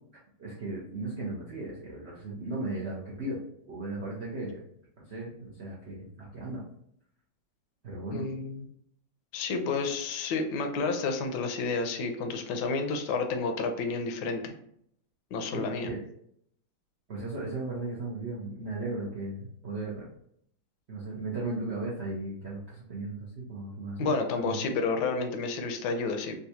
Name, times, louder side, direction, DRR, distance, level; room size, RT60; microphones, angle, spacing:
voice 1, 0.4-3.4 3.6-4.6 5.1-6.6 7.8-8.3 15.5-16.0 17.1-20.1 20.9-24.6, right 2 dB, 85° right, -5 dB, 0.5 m, -36 dB
voice 2, 8.1-8.6 9.3-14.5 15.3-15.9 24.0-26.4, left 4 dB, 70° left, 5 dB, 1.0 m, -30 dB
3.9 x 2.3 x 2.7 m, 0.69 s
omnidirectional pair, 2.1 m